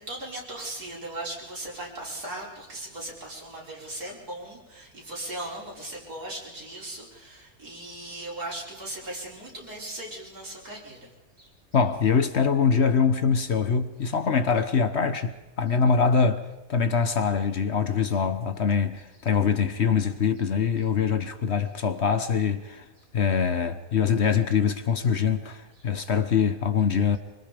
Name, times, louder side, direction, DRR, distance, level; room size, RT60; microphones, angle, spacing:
voice 1, 0.0-11.1 11.4-11.5, right 1 dB, 90° right, 5.7 m, -38 dB
voice 2, 11.7-16.4 16.7-22.8 23.1-27.2, left 6 dB, 50° left, 1.1 m, -24 dB
25.0 x 24.5 x 5.2 m
omnidirectional pair, 1.6 m